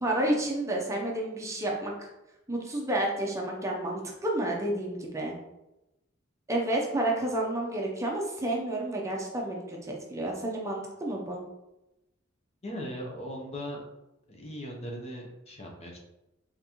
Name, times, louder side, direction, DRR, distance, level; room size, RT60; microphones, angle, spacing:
voice 1, 0.0-2.1 2.5-5.4 6.5-11.4, right 1 dB, 15° right, -1 dB, 0.6 m, -30 dB
voice 2, 12.6-13.8 14.3-16.0, equal, 30° left, 0 dB, 0.7 m, -38 dB
3.8 x 3.5 x 2.9 m, 0.94 s
head